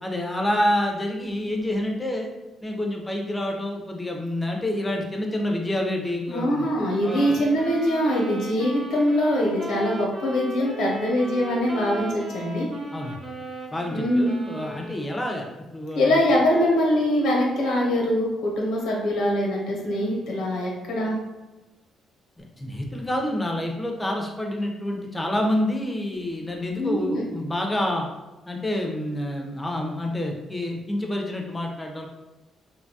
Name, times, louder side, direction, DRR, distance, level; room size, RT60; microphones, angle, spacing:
voice 1, 0.0-2.3 2.6-6.7 7.0-7.4 12.9-13.2 13.7-16.2 22.4-28.1 28.5-32.1, left 1 dB, 15° left, 1 dB, 0.5 m, -28 dB
voice 2, 6.3-12.7 13.9-14.4 15.9-21.2 26.8-27.2, equal, 80° left, -2 dB, 0.8 m, -23 dB
sound 1, 7.0-15.4, right 1 dB, 35° right, 0.5 m, -37 dB
2.7 x 2.2 x 2.7 m, 1.1 s
cardioid pair, 90°, 0 cm